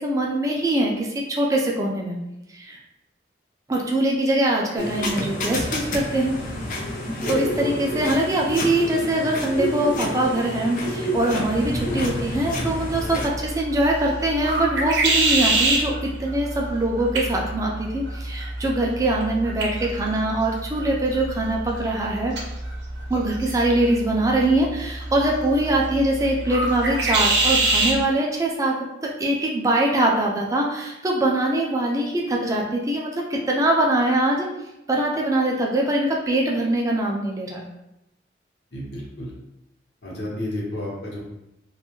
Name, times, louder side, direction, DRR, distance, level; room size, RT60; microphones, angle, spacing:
voice 1, 0.0-2.2 2.5-2.8 3.7-6.4 7.3-22.4 23.1-28.8 29.0-34.5 34.9-37.7, right 1 dB, 20° right, -1 dB, 0.4 m, -23 dB
sound 1, 4.8-13.3, left 1 dB, 45° left, 0.5 m, -29 dB
sound 2, 12.7-28.0, right 2 dB, 80° right, 0.6 m, -26 dB
voice 2, 38.7-39.3 40.0-41.2, left 1 dB, 70° left, -4 dB, 0.8 m, -31 dB
2.5 x 2.3 x 2.9 m, 0.89 s
head